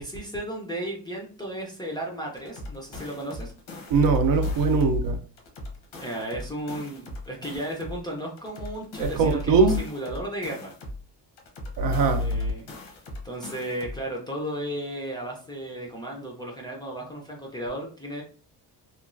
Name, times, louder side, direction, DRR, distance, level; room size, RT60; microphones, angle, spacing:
voice 1, 0.0-3.5 6.0-10.7 12.1-12.7 13.2-18.2, right 1 dB, 10° left, 0.4 m, -34 dB
sound 1, 2.4-5.0 5.4-8.0 8.4-11.0 11.4-14.0, left 1 dB, 85° left, 1.0 m, -41 dB
voice 2, 3.9-5.2 9.0-9.8 11.8-12.3, right 3 dB, 60° right, 0.5 m, -21 dB
2.9 x 2.3 x 2.4 m
cardioid pair, 165°, 41 cm